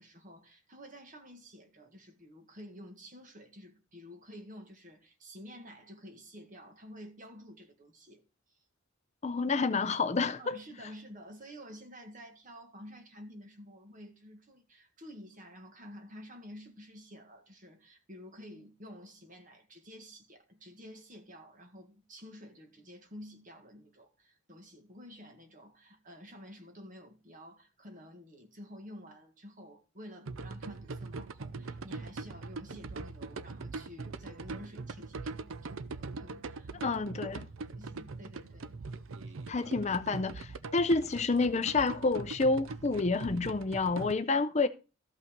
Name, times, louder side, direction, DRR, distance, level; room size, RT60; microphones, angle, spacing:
voice 1, 0.0-8.2 10.4-37.0 37.7-38.8, equal, 40° right, 1.8 m, -50 dB
voice 2, 9.2-10.6 36.7-37.5 39.5-44.7, left 3 dB, 35° left, 0.5 m, -29 dB
sound 1, 30.3-44.1, right 3 dB, 70° right, 0.6 m, -42 dB
14.0 x 5.6 x 5.2 m
head